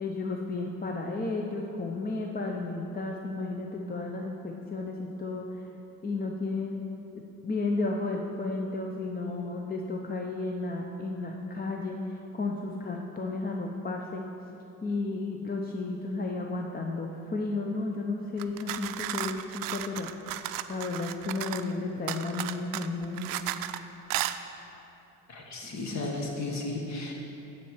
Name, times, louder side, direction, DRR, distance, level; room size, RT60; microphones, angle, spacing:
voice 1, 0.0-5.7 6.0-6.8 7.4-14.2 14.8-20.1 20.7-23.4 25.6-25.9, left 3 dB, 25° left, 1 dB, 0.7 m, -33 dB
sound 1, 18.4-21.7 22.1-23.8 24.1-24.4, right 13 dB, 65° right, 0.5 m, -34 dB
voice 2, 25.3-27.1, left 2 dB, 45° left, 0 dB, 1.7 m, -34 dB
9.2 x 4.3 x 7.1 m, 3.0 s
supercardioid pair, 85°, 37 cm